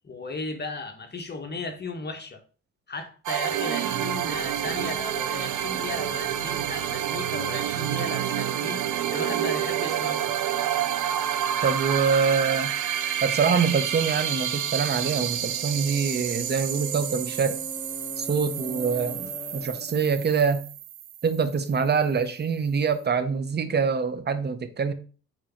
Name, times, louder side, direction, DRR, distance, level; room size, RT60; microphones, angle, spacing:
voice 1, 0.0-2.4 2.9-8.8 9.1-10.3, left 3 dB, 35° left, 1.3 m, -35 dB
sound 1, 3.3-21.7, right 10 dB, 80° right, 0.7 m, -29 dB
sound 2, 7.4-20.1, left 1 dB, 5° left, 1.3 m, -44 dB
voice 2, 11.6-12.7 13.2-17.6 18.2-20.6 21.2-24.9, right 5 dB, 35° right, 0.9 m, -25 dB
4.8 x 3.9 x 5.7 m
cardioid pair, 90°, 30 cm